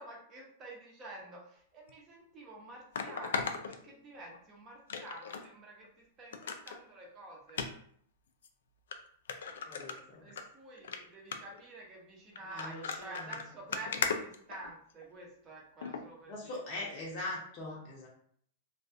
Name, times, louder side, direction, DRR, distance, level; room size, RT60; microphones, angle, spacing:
voice 1, 0.0-5.9 6.2-7.7 10.2-16.6, right 2 dB, 30° right, -2 dB, 0.8 m, -49 dB
sound 1, 1.9-2.0 2.9-4.4 4.9-5.5 5.8-5.9 6.3-6.8 7.5-7.7 8.4-8.5 8.9-9.0 9.3-10.4 10.8-11.0 11.3-11.6 12.4-15.0 15.8-16.0 16.5-16.6, left 5 dB, 85° left, 0.3 m, -37 dB
voice 2, 9.7-10.4 12.4-13.4 16.3-18.1, left 2 dB, 40° left, -4 dB, 0.7 m, -42 dB
2.3 x 2.3 x 2.6 m, 0.62 s
hypercardioid pair, 135°, 0 cm